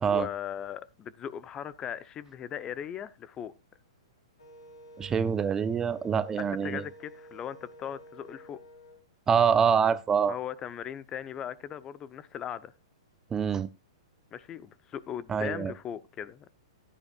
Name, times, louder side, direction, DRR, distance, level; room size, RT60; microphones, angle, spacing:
voice 1, 0.1-3.5 6.4-8.6 10.3-12.7 14.3-16.5, left 9 dB, 25° left, 0.8 m, -38 dB
Wind instrument woodwind instrument, 4.4-9.0, equal, 75° left, 6.0 m, -51 dB
voice 2, 5.0-6.8 9.3-10.3 13.3-13.7 15.3-15.7, right 7 dB, 15° right, 0.6 m, -25 dB
15.0 x 11.0 x 2.4 m
figure-of-eight pair, 110°, 3 cm